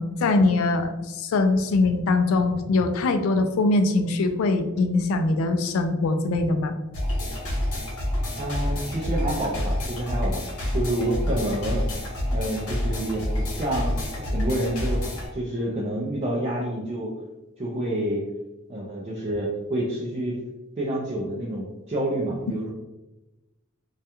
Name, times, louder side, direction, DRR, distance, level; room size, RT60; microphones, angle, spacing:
voice 1, 0.0-6.7, left 3 dB, 70° left, 7 dB, 0.3 m, -22 dB
sound 1, 6.9-15.3, left 1 dB, 90° left, 0.9 m, -28 dB
voice 2, 8.4-10.4 10.7-11.8 12.3-15.0 15.3-17.2 17.6-18.2 18.7-20.3 20.8-22.7, right 1 dB, 30° right, -5 dB, 0.4 m, -28 dB
2.3 x 2.1 x 2.8 m, 1.0 s
head